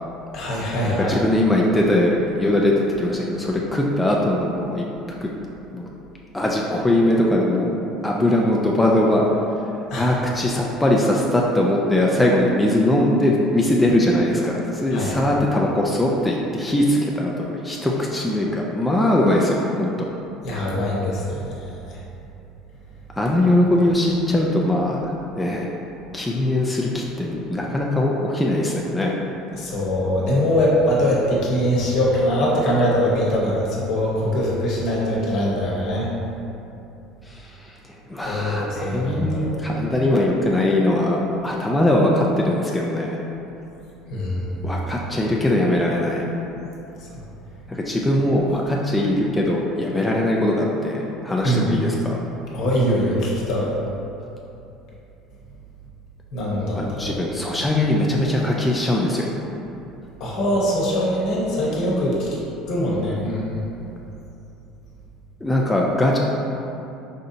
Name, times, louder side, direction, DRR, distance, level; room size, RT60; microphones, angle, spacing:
voice 1, 0.3-1.2 9.9-10.1 14.9-15.1 20.4-22.0 29.5-36.1 38.2-39.6 44.1-44.8 47.0-47.1 51.4-51.7 52.5-53.7 56.3-57.2 60.2-62.3 62.7-63.6, equal, 60° left, -5 dB, 0.9 m, -22 dB
voice 2, 0.8-5.3 5.7-5.9 6.3-7.8 8.0-9.2 10.0-19.9 23.2-25.7 26.1-29.2 37.3-37.7 38.1-43.2 44.6-46.2 47.7-52.2 56.7-59.3 65.4-66.2, left 1 dB, 10° left, -2 dB, 0.3 m, -21 dB
4.3 x 2.7 x 2.6 m, 2.8 s
supercardioid pair, 105°, 0 cm